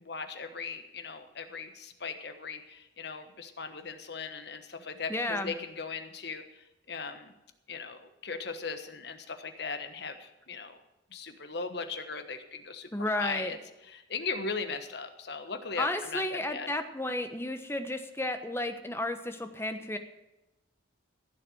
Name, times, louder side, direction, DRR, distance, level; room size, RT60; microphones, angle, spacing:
voice 1, 0.0-7.3 7.7-10.8 11.1-16.7, left 4 dB, 60° left, 8 dB, 1.2 m, -38 dB
voice 2, 5.1-5.5 12.9-13.5 15.8-20.0, left 1 dB, 15° left, 7 dB, 1.1 m, -32 dB
15.5 x 7.7 x 7.8 m, 0.94 s
head